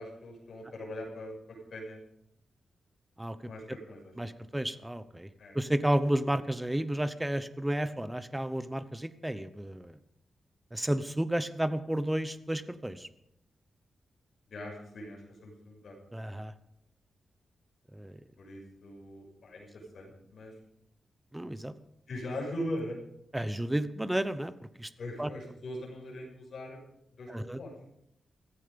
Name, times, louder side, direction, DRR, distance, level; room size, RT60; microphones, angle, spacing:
voice 1, 0.0-2.0 3.4-4.5 5.4-5.6 7.9-8.1 14.5-16.0 18.4-20.6 22.1-23.0 25.0-26.8 27.1-27.9, left 1 dB, 55° left, -1 dB, 6.3 m, -41 dB
voice 2, 4.2-5.3 5.5-10.0 10.7-13.1 16.1-16.5 17.9-18.1 21.3-21.7 23.3-24.5 24.8-24.9 25.2-25.3 27.3-27.6, right 1 dB, 5° right, 13 dB, 0.8 m, -32 dB
15.5 x 15.0 x 5.2 m, 0.78 s
wide cardioid pair, 150°, 0 cm